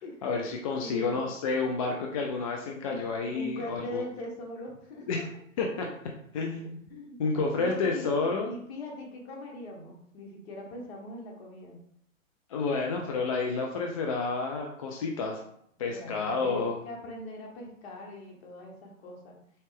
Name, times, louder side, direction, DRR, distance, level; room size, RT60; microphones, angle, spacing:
voice 1, 0.2-4.0 5.1-5.2 5.6-5.9 6.3-6.8 7.2-8.5 12.5-15.4 15.8-16.8, left 4 dB, 30° left, 1 dB, 0.4 m, -30 dB
voice 2, 0.8-1.2 2.9-5.2 5.8-5.9 6.9-7.2 7.5-11.8 15.8-19.4, left 1 dB, 50° left, -1 dB, 1.6 m, -41 dB
4.1 x 3.3 x 3.4 m, 0.68 s
hypercardioid pair, 120°, 41 cm